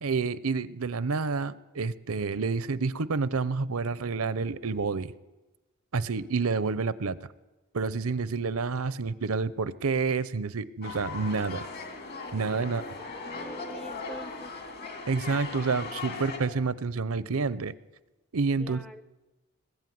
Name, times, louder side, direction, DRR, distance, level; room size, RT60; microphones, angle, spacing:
voice 1, 0.0-5.1 5.9-7.2 7.7-11.7 12.3-12.8 15.1-17.7 18.3-18.8, right 4 dB, 75° right, 17 dB, 0.7 m, -29 dB
sound 1, 10.8-16.4, left 4 dB, 45° left, 3.1 m, -38 dB
voice 2, 12.6-14.5 18.6-19.0, equal, 5° left, 12 dB, 0.6 m, -45 dB
21.0 x 14.0 x 9.4 m, 1.1 s
head